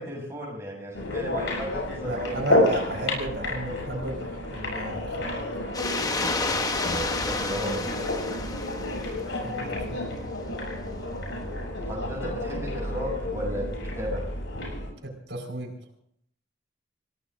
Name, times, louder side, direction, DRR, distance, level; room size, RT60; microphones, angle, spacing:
voice 1, 0.0-3.1 5.9-8.5 11.9-14.2, equal, 15° right, -4 dB, 7.0 m, -35 dB
sound 1, 0.9-14.9, left 1 dB, 85° left, 6.9 m, -30 dB
voice 2, 2.0-5.4 9.4-10.3 15.0-15.7, right 2 dB, 75° right, 2 dB, 4.5 m, -34 dB
sound 2, 5.7-9.5, left 3 dB, 20° left, 0.9 m, -30 dB
28.5 x 17.5 x 2.6 m, 0.69 s
head